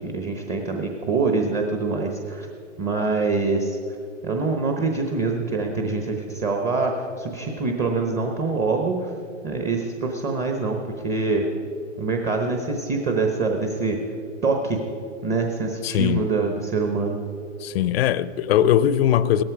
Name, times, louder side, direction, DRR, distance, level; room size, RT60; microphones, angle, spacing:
voice 1, 0.0-2.5 2.8-3.8 4.2-9.1 9.4-10.8 11.0-11.5 12.0-14.0 14.4-14.8 15.2-17.2, right 4 dB, 20° right, 3 dB, 1.0 m, -24 dB
voice 2, 15.8-16.3 17.6-19.4, left 11 dB, 50° left, 16 dB, 0.6 m, -20 dB
17.0 x 14.0 x 4.8 m, 2.5 s
hypercardioid pair, 145°, 38 cm